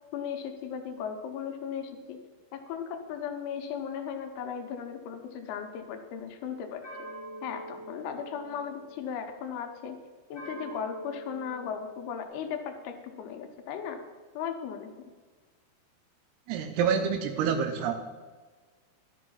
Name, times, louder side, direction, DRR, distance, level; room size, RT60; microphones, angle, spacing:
voice 1, 0.1-2.2 2.5-6.8 7.4-10.0 10.3-14.0 14.3-14.9, left 7 dB, 80° left, 5 dB, 2.7 m, -37 dB
sound 1, 4.6-5.8 6.8-9.3 10.3-12.2, right 1 dB, 30° left, 0.8 m, -45 dB
voice 2, 16.5-17.9, right 7 dB, 80° right, 6 dB, 2.5 m, -27 dB
12.0 x 5.8 x 5.5 m, 1.4 s
omnidirectional pair, 4.8 m